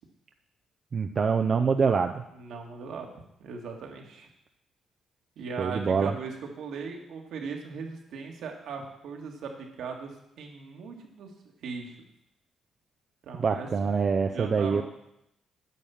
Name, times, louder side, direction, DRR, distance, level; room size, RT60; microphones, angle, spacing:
voice 1, 0.9-2.2 5.6-6.1 13.4-14.8, right 5 dB, 45° right, 5 dB, 0.5 m, -25 dB
voice 2, 2.3-3.1 3.4-4.3 5.4-11.3 11.6-12.0 13.2-13.9 14.2-14.8, right 5 dB, 75° right, 1 dB, 1.9 m, -39 dB
9.3 x 5.6 x 7.1 m, 0.80 s
cardioid pair, 90°, 0 cm